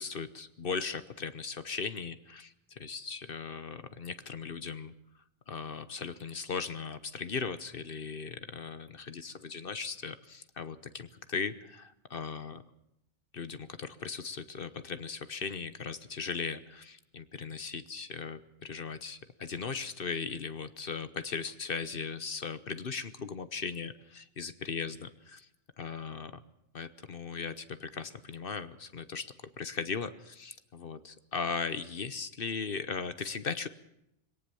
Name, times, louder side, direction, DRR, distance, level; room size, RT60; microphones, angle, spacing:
voice 1, 0.0-4.9 5.5-12.6 13.3-25.5 25.8-26.3 26.7-33.7, left 5 dB, 50° left, 13 dB, 1.1 m, -38 dB
21.5 x 18.0 x 7.0 m, 0.83 s
omnidirectional pair, 1.2 m